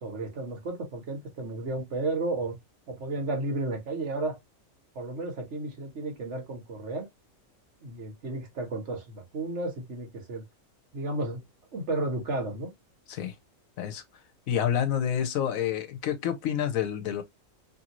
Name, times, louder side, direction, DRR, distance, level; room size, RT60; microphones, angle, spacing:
voice 1, 0.0-2.6 2.9-4.4 4.9-7.1 7.8-10.4 10.9-11.4 11.7-12.7, right 2 dB, 60° right, 1.3 m, -33 dB
voice 2, 14.5-17.2, left 9 dB, 90° left, 1.2 m, -28 dB
3.0 x 2.7 x 2.9 m
omnidirectional pair, 1.4 m